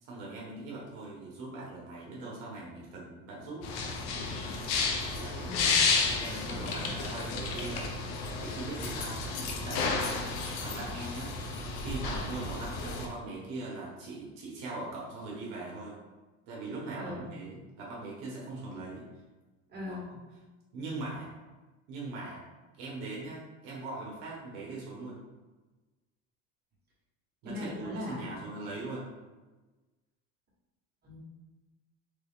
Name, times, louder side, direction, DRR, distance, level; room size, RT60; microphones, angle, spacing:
voice 1, 0.0-3.7 5.1-5.5 6.0-7.9 8.4-9.2 9.6-10.1 10.6-11.4 11.7-16.0 16.5-19.0 19.8-20.2 20.7-21.3 21.9-22.4 22.8-25.2 27.4-29.1, right 2 dB, 75° right, -4 dB, 1.1 m, -40 dB
sound 1, 3.6-13.1, left 4 dB, 75° left, 0.7 m, -32 dB
voice 2, 5.4-5.8 6.5-6.9 16.9-17.2 19.7-20.1 27.4-28.4 31.0-31.2, left 2 dB, 25° right, -6 dB, 1.4 m, -40 dB
3.5 x 2.4 x 3.5 m, 1.2 s
cardioid pair, 125°, 38 cm